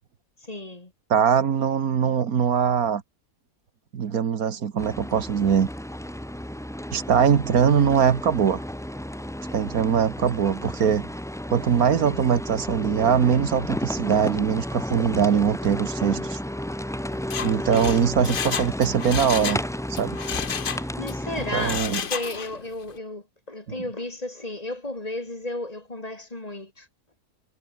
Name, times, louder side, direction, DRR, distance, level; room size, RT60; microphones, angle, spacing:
voice 1, 0.4-0.9 17.7-18.1 21.0-26.9, left 2 dB, 25° left, 2.3 m, -34 dB
voice 2, 1.1-3.0 3.9-5.7 6.9-8.6 9.5-11.1 11.5-16.4 17.4-19.6 20.0-20.2 21.5-22.0, right 7 dB, 80° right, 1.8 m, -22 dB
sound 1, 4.8-21.8, left 1 dB, 5° left, 0.4 m, -32 dB
Mechanisms, 17.2-19.7 20.0-21.2 21.5-22.6 22.9-23.0, left 7 dB, 45° left, 0.9 m, -31 dB
omnidirectional pair, 1.5 m